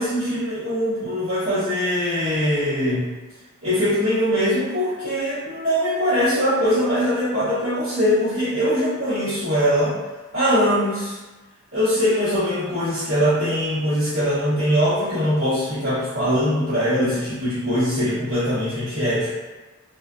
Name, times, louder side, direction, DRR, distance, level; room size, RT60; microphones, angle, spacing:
voice 1, 0.0-3.1 3.6-9.9 10.3-11.2 11.7-19.3, equal, 75° right, -16 dB, 1.1 m, -22 dB
2.4 x 2.4 x 2.3 m, 1.2 s
head